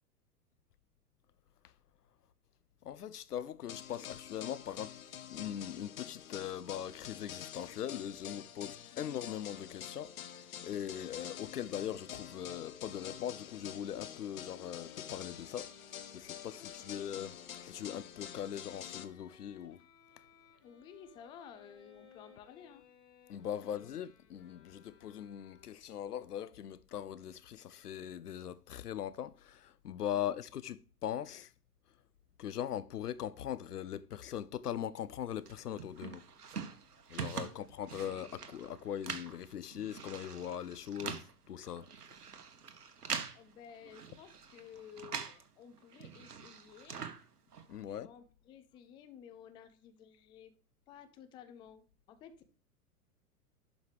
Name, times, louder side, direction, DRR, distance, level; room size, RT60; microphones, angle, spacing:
voice 1, 2.8-4.9 5.3-10.1 10.4-15.7 16.1-19.8 23.3-31.5 32.4-36.2 37.1-41.9 47.7-48.1, left 10 dB, 75° left, 0.7 m, -40 dB
sound 1, 3.7-19.0, left 10 dB, 60° left, 1.1 m, -48 dB
Bowed string instrument, 11.5-26.0, left 6 dB, 40° left, 2.3 m, -62 dB
voice 2, 16.6-17.0 20.6-22.9 23.4-23.9 30.1-30.4 37.4-37.7 43.3-47.0 47.9-50.5 50.9-52.5, left 8 dB, 10° left, 0.4 m, -55 dB
sound 2, 35.5-45.5 45.8-47.8, right 6 dB, 75° right, 1.2 m, -44 dB
11.5 x 5.1 x 3.2 m
figure-of-eight pair, 95°, 46 cm